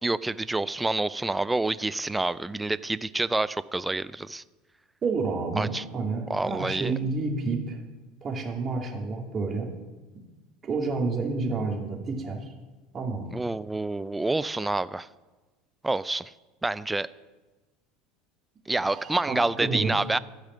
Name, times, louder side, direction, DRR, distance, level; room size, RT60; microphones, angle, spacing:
voice 1, 0.0-4.4 5.6-5.8 6.3-6.9 13.3-15.1 15.8-16.3 16.6-17.1 18.7-20.2, right 2 dB, 10° right, 16 dB, 0.4 m, -28 dB
voice 2, 5.0-7.8 8.2-9.7 10.6-12.5 12.9-13.4 18.9-19.9, right 3 dB, 35° right, 1 dB, 2.4 m, -30 dB
12.5 x 4.9 x 7.5 m, 1.2 s
hypercardioid pair, 85°, 0 cm